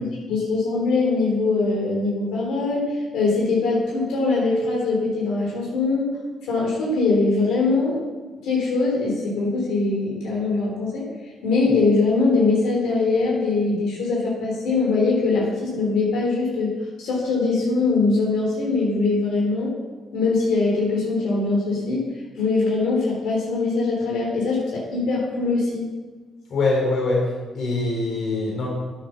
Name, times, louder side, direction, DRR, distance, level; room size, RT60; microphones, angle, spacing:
voice 1, 0.3-6.1 6.5-8.0 8.4-11.1 11.4-16.7 17.0-19.7 20.1-22.0 22.4-25.9, left 3 dB, 80° left, -3 dB, 3.5 m, -22 dB
voice 2, 26.5-27.2 27.5-28.7, left 3 dB, 65° left, -2 dB, 3.9 m, -23 dB
9.5 x 8.7 x 6.0 m, 1.3 s
cardioid pair, 75°, 0 cm